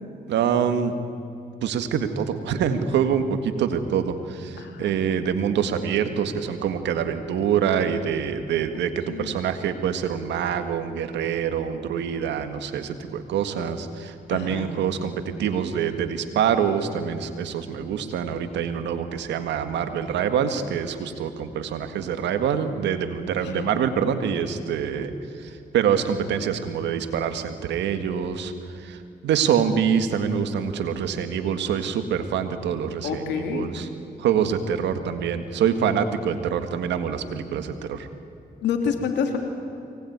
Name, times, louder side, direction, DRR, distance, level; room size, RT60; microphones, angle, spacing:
voice 1, 0.3-0.9 1.6-15.1 15.4-25.1 25.4-28.5 28.8-33.9 34.2-38.1, right 8 dB, 90° right, 9 dB, 1.9 m, -25 dB
voice 2, 4.6-5.0 9.1-9.3 14.3-14.7 23.4-23.7 33.0-33.7 38.6-39.4, left 6 dB, 90° left, 4 dB, 3.1 m, -28 dB
24.0 x 19.5 x 9.6 m, 2.7 s
supercardioid pair, 55°, 18 cm